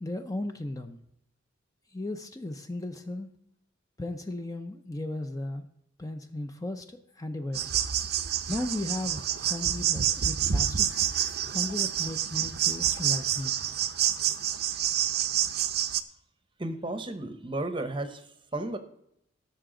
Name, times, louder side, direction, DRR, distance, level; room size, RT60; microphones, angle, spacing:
voice 1, 0.0-1.0 1.9-3.3 4.0-5.6 6.0-7.7 8.2-11.0 11.4-13.7, left 1 dB, 15° left, 6 dB, 0.5 m, -36 dB
sound 1, 7.5-16.0, right 10 dB, 50° right, 0.6 m, -28 dB
voice 2, 16.6-18.2 18.5-18.8, right 2 dB, 25° right, 9 dB, 0.8 m, -33 dB
17.0 x 6.9 x 3.8 m, 0.77 s
head